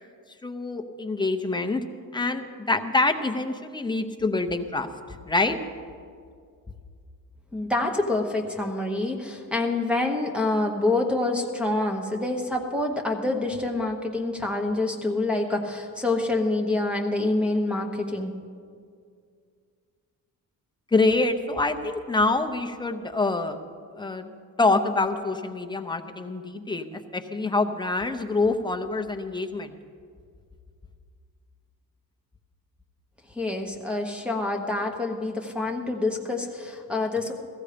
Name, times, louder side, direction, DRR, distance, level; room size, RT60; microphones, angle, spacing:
voice 1, 0.4-1.8 2.1-4.9 5.3-5.6 20.9-23.6 23.9-24.3 24.6-29.7, left 3 dB, 15° left, 6 dB, 0.6 m, -25 dB
voice 2, 7.5-18.3 33.3-37.3, left 2 dB, 5° right, -1 dB, 1.0 m, -27 dB
16.0 x 14.5 x 5.0 m, 2.2 s
wide cardioid pair, 175°, 35 cm